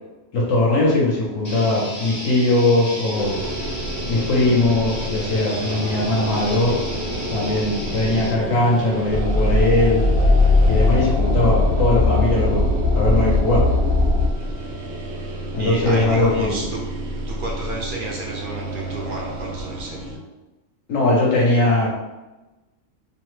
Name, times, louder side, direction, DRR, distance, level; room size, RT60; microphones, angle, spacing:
voice 1, 0.3-3.4 4.1-6.8 7.3-10.0 10.7-12.7 12.9-13.6 15.5-16.6 20.9-21.9, left 2 dB, 75° left, -4 dB, 1.0 m, -20 dB
sound 1, 1.4-8.3, equal, 25° left, 0.4 m, -33 dB
sound 2, 3.1-20.2, right 1 dB, 85° right, 1.0 m, -30 dB
sound 3, 9.1-14.3, left 2 dB, 55° left, 0.7 m, -18 dB
voice 2, 15.5-16.8 17.3-20.1, right 2 dB, 60° right, -3 dB, 0.5 m, -31 dB
2.9 x 2.0 x 3.0 m, 1.1 s
omnidirectional pair, 1.4 m